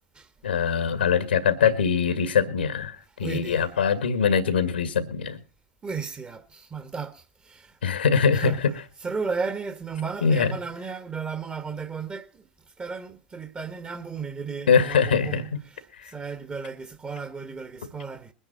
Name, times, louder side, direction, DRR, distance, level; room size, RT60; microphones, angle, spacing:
voice 1, 0.4-5.4 7.8-8.7 10.2-10.6 14.7-15.4 16.0-16.1, left 6 dB, 80° left, 1.9 m, -22 dB
voice 2, 3.2-3.7 5.8-7.8 8.3-8.6 9.0-12.5 12.8-15.5 16.1-18.3, right 5 dB, 20° right, 1.8 m, -34 dB
21.5 x 10.0 x 4.2 m
hypercardioid pair, 90°, 6 cm